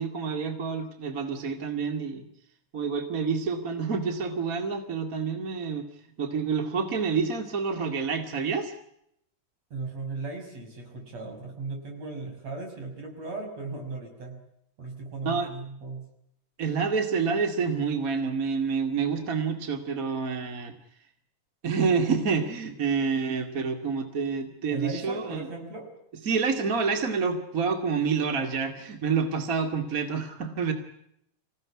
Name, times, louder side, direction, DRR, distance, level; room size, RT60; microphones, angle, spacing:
voice 1, 0.0-2.3 2.7-5.9 6.2-8.7 15.2-15.5 16.6-20.7 21.6-25.5 26.2-30.7, right 5 dB, 30° right, 6 dB, 2.3 m, -28 dB
voice 2, 9.7-14.4 14.8-16.1 24.7-25.9, right 3 dB, 55° right, 3 dB, 7.0 m, -37 dB
26.5 x 17.0 x 9.7 m, 0.76 s
omnidirectional pair, 3.5 m